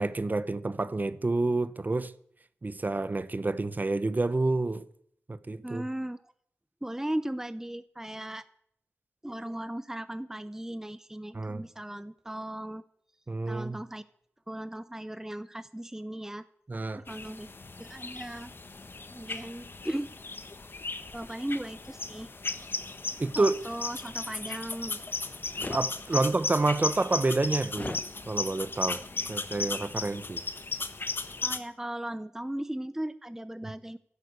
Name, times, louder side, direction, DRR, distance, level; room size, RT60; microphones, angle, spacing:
voice 1, 0.0-2.1 2.6-4.8 5.3-5.8 11.3-11.6 13.3-13.8 16.7-17.0 23.2-23.6 25.7-28.0 28.3-29.0 29.3-30.4, right 2 dB, 40° right, 0.9 m, -28 dB
voice 2, 5.6-6.3 6.8-8.5 9.2-12.8 13.5-14.0 14.5-16.4 16.9-17.5 17.8-18.5 19.1-20.1 21.1-22.3 23.3-25.0 26.1-26.3 31.4-34.0, right 1 dB, 10° right, 0.7 m, -37 dB
sound 1, 17.1-31.6, left 3 dB, 50° left, 1.3 m, -36 dB
sound 2, 25.5-25.9 27.7-28.0, left 2 dB, 35° left, 0.9 m, -37 dB
11.5 x 11.5 x 8.3 m
cardioid pair, 45°, 5 cm